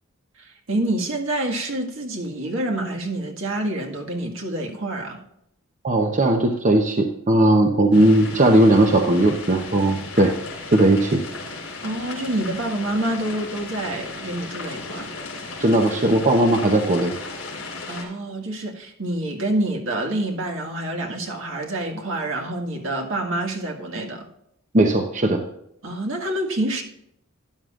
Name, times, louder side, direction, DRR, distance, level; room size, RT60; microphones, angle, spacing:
voice 1, 0.4-5.2 11.8-15.2 17.9-24.3 25.8-26.8, right 1 dB, 65° right, 1.8 m, -27 dB
voice 2, 5.8-10.3 10.7-11.2 15.6-17.1 24.7-25.4, right 1 dB, 35° right, 0.8 m, -18 dB
sound 1, 7.9-18.0, left 3 dB, 70° left, 3.6 m, -35 dB
12.5 x 10.5 x 2.5 m
head